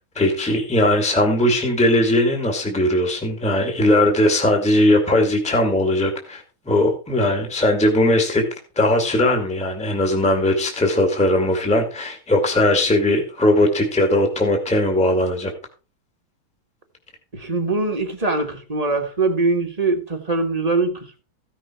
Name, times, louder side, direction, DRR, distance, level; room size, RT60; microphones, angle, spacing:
voice 1, 0.0-8.4 8.8-15.5, left 1 dB, 5° left, 3 dB, 2.1 m, -19 dB
voice 2, 17.3-21.2, right 3 dB, 20° right, 4 dB, 1.6 m, -22 dB
15.5 x 6.2 x 4.5 m, 0.34 s
omnidirectional pair, 2.3 m